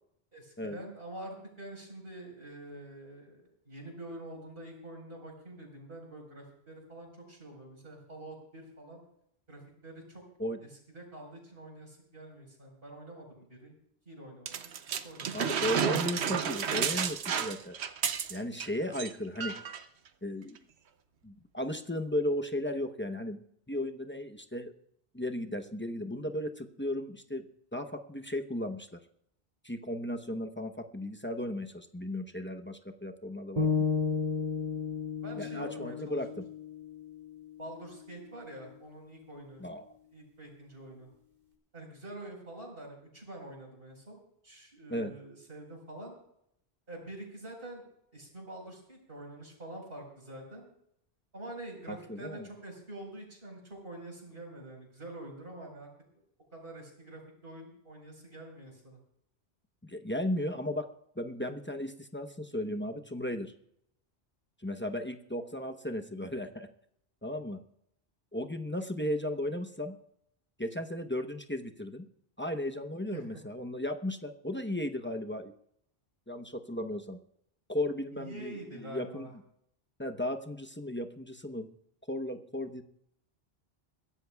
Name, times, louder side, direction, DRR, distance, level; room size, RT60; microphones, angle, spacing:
voice 1, 0.3-9.0 9.5-10.2 10.6-13.7 14.0-14.7 15.0-15.7 35.2-36.2 37.6-39.7 40.1-41.1 41.7-46.1 46.9-47.8 48.1-50.7 51.3-55.9 56.5-59.0 73.1-73.4 78.1-79.3, right 1 dB, 60° right, 1 dB, 4.9 m, -46 dB
sound 1, 14.5-18.7 18.9-19.1 19.4-19.8 20.6-20.7, right 7 dB, 90° right, 1.1 m, -31 dB
voice 2, 15.3-17.7 18.3-19.6 20.2-20.6 21.2-23.4 23.7-24.7 25.1-27.4 27.7-29.0 29.6-33.9 35.4-36.5 39.6-39.9 44.9-45.1 51.9-52.5 59.8-60.9 61.2-63.5 64.6-66.7 67.2-67.6 68.3-70.0 70.6-72.1 72.4-75.5 76.3-77.2 77.7-79.3 80.0-81.7 82.1-82.8, left 1 dB, 10° left, 5 dB, 0.8 m, -35 dB
sound 2, 33.6-37.7, left 5 dB, 40° right, 2.8 m, -33 dB
22.5 x 16.0 x 2.3 m, 0.74 s
omnidirectional pair, 1.1 m